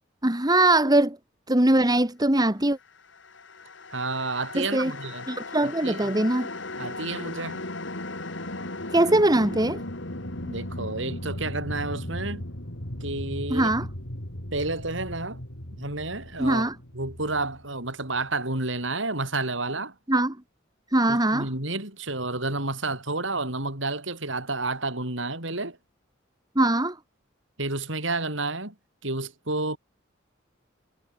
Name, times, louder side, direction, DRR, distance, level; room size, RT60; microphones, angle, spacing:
voice 1, 0.2-1.2 1.5-2.8 4.5-4.9 5.3-6.5 8.9-9.8 13.5-13.9 16.4-16.8 20.1-20.4 20.9-21.5 26.6-27.0, right 1 dB, 20° right, 2.4 m, -21 dB
sound 1, 3.1-18.3, left 1 dB, 65° left, 5.3 m, -37 dB
voice 2, 3.9-5.3 5.6-6.0 6.8-7.6 10.5-12.4 13.0-13.7 14.5-15.4 15.7-16.7 16.9-19.9 21.1-25.8 27.6-28.7 29.0-29.8, right 2 dB, 70° right, 7.8 m, -30 dB
head